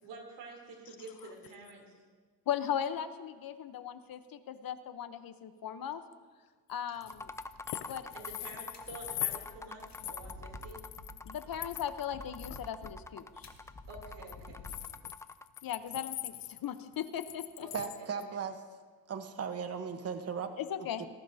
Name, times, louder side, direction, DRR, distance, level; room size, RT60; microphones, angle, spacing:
voice 1, 0.0-1.9 8.1-10.9 13.9-14.7 17.6-17.7, right 3 dB, 90° right, 0 dB, 3.3 m, -48 dB
voice 2, 2.5-6.0 6.7-7.3 7.9-8.1 11.2-13.5 15.6-17.7 20.6-21.0, left 9 dB, 60° left, 11 dB, 0.9 m, -37 dB
sound 1, 7.0-9.5 9.9-12.1 12.3-12.9 13.9-18.2, left 14 dB, 80° left, 0.7 m, -41 dB
sound 2, 7.0-15.6, left 2 dB, 10° left, 0.3 m, -47 dB
sound 3, 7.1-15.0, left 2 dB, 45° left, 1.9 m, -51 dB
voice 3, 17.7-18.6 19.1-20.5 21.0-21.1, right 6 dB, 35° right, 7 dB, 1.1 m, -37 dB
19.5 x 15.0 x 2.8 m, 1.5 s
cardioid pair, 95°, 40 cm